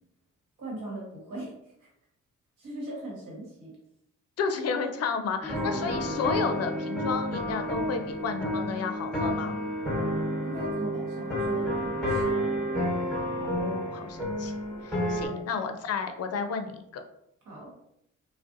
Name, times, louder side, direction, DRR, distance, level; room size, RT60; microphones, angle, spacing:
voice 1, 0.6-1.9 2.6-3.7 10.4-12.4 15.2-15.4 17.4-17.7, right 1 dB, 65° right, -3 dB, 1.1 m, -40 dB
voice 2, 4.4-9.6 13.4-14.5 14.8-17.0, left 5 dB, 50° left, 7 dB, 0.4 m, -32 dB
sound 1, 5.4-15.3, equal, 5° left, 1.1 m, -30 dB
2.5 x 2.0 x 2.5 m, 0.79 s
supercardioid pair, 60°, 32 cm